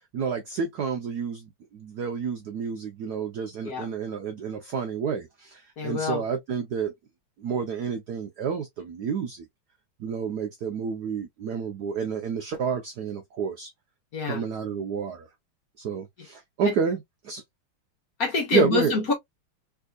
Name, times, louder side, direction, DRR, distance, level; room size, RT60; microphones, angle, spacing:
voice 1, 0.1-6.9 7.4-9.4 10.0-13.7 14.2-15.3 15.8-17.4 18.5-18.9, right 6 dB, 80° right, 0.9 m, -30 dB
voice 2, 5.8-6.2 14.1-14.4 18.2-19.1, left 4 dB, 55° left, 1.2 m, -26 dB
3.5 x 3.3 x 2.3 m
omnidirectional pair, 2.4 m